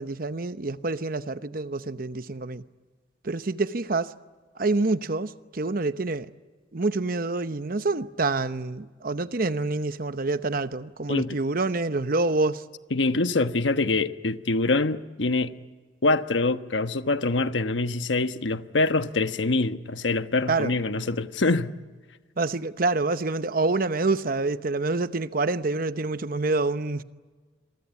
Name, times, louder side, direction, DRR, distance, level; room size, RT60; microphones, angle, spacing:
voice 1, 0.0-2.6 3.2-4.1 4.6-6.3 6.7-12.6 20.5-20.7 22.4-27.0, right 3 dB, 50° right, 0.9 m, -27 dB
voice 2, 12.9-15.5 16.0-21.7, left 3 dB, 90° left, 1.2 m, -25 dB
27.0 x 23.5 x 8.4 m
head